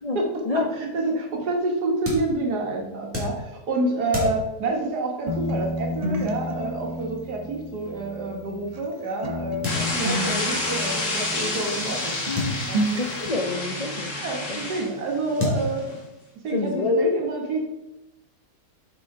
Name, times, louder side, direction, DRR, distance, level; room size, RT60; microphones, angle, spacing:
voice 1, 0.1-12.1 12.7-12.8 14.1-15.8 16.4-17.6, right 2 dB, 85° right, 1 dB, 1.9 m, -28 dB
sound 1, 2.0-9.0 9.6-10.4 10.6-10.7 10.9-11.0 12.3-13.5 14.6-14.7 15.4-16.3, left 2 dB, 10° right, 2.0 m, -34 dB
sound 2, 5.3-8.9 9.2-12.0 12.3-13.3, equal, 35° right, 0.7 m, -31 dB
sound 3, 9.6-16.0, left 2 dB, 50° left, 1.7 m, -29 dB
voice 2, 12.9-14.1 14.5-14.6 16.5-17.2, left 3 dB, 75° left, 0 dB, 0.3 m, -26 dB
8.0 x 5.0 x 3.7 m, 0.93 s
omnidirectional pair, 1.7 m